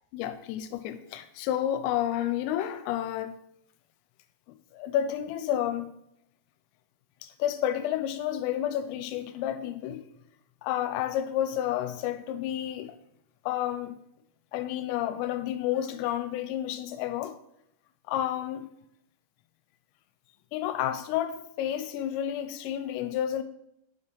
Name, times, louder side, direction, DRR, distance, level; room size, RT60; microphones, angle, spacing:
voice 1, 0.1-3.4 4.7-5.9 7.2-10.1 10.6-13.0 13.5-13.9 14.5-17.4 18.1-18.7 20.5-23.4, left 11 dB, 85° left, 3.1 m, -30 dB
7.2 x 6.4 x 3.9 m
omnidirectional pair, 5.9 m